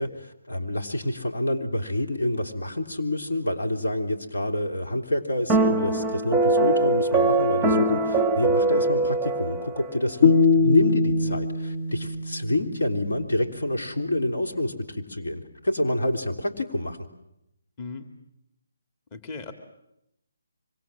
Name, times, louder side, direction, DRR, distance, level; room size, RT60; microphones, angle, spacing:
voice 1, 0.0-17.0, left 1 dB, 75° left, 4 dB, 3.5 m, -28 dB
sound 1, 5.5-10.0, right 2 dB, 5° right, 0.9 m, -22 dB
sound 2, 10.2-13.4, left 4 dB, 60° left, 1.5 m, -22 dB
voice 2, 19.1-19.5, left 4 dB, 25° left, 7 dB, 2.5 m, -37 dB
25.5 x 25.0 x 7.5 m, 0.81 s
figure-of-eight pair, 150°, 0 cm